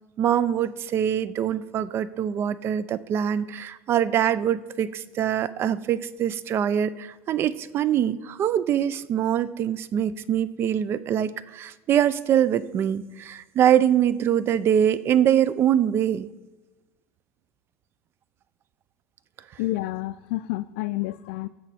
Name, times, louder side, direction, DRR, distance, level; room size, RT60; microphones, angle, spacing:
voice 1, 0.2-16.3, right 10 dB, 40° right, 16 dB, 0.5 m, -23 dB
voice 2, 19.6-21.5, left 18 dB, 80° left, 12 dB, 0.3 m, -29 dB
15.0 x 8.0 x 4.3 m, 1.1 s
supercardioid pair, 125°, 6 cm